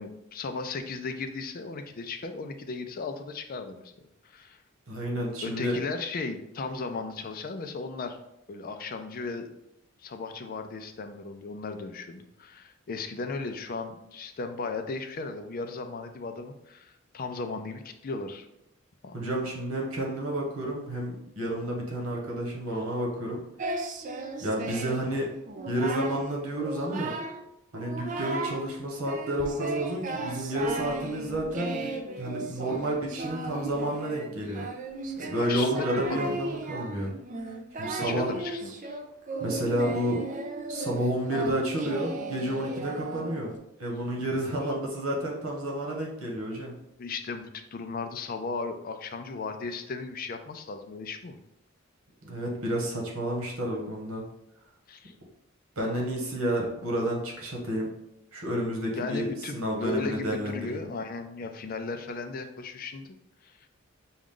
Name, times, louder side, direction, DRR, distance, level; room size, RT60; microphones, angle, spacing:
voice 1, 0.0-3.8 4.2-4.6 5.4-8.2 8.5-9.5 10.0-18.5 19.0-19.2 35.4-36.4 38.0-39.0 44.5-44.6 47.0-51.4 54.9-55.1 59.0-63.2 63.4-63.7, left 4 dB, 45° left, 7 dB, 0.4 m, -36 dB
voice 2, 4.9-5.8 19.1-23.4 24.4-25.3 25.7-27.1 27.7-31.9 32.2-34.7 35.2-37.1 37.8-38.3 39.4-40.2 40.7-46.8 52.2-54.3 55.8-57.9 58.3-60.9, right 1 dB, 90° right, -1 dB, 1.3 m, -30 dB
Singing, 23.6-25.1 25.5-26.2 26.6-27.4 27.7-28.6 29.1-43.6, right 2 dB, 40° right, 0.4 m, -36 dB
6.2 x 2.3 x 3.7 m, 0.84 s
head